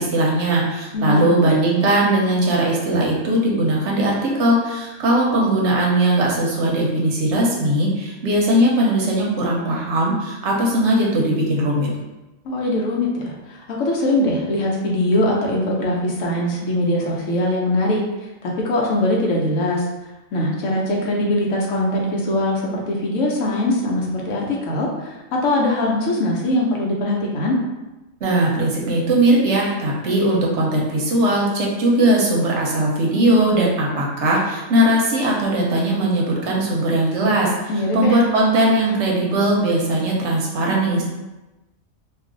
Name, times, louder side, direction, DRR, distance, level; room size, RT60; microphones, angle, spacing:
voice 1, 0.0-11.9 28.2-41.0, right 1 dB, 65° right, -3 dB, 0.9 m, -19 dB
voice 2, 0.9-1.3 12.4-18.0 18.4-19.8 20.3-27.6 37.7-38.2, left 1 dB, 70° left, -2 dB, 1.0 m, -21 dB
2.5 x 2.4 x 3.7 m, 1.1 s
omnidirectional pair, 1.4 m